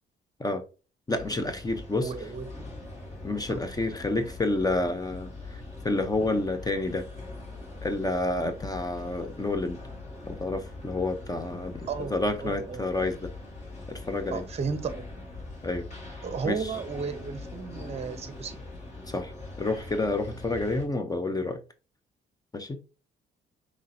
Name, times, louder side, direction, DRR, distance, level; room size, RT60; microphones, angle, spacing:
sound 1, 1.1-20.9, left 2 dB, 35° left, 2.3 m, -42 dB
voice 1, 1.1-2.1 3.2-7.1 7.8-9.8 10.2-13.3 13.9-14.4 15.6-15.9 16.4-16.7 19.1-19.3 19.6-21.6 22.5-22.8, left 2 dB, 20° left, 0.6 m, -29 dB
voice 2, 2.0-2.5 3.5-3.6 11.9-13.2 14.3-15.1 16.2-18.6, right 5 dB, 30° right, 0.7 m, -34 dB
5.5 x 3.1 x 2.6 m
cardioid pair, 90°, 20 cm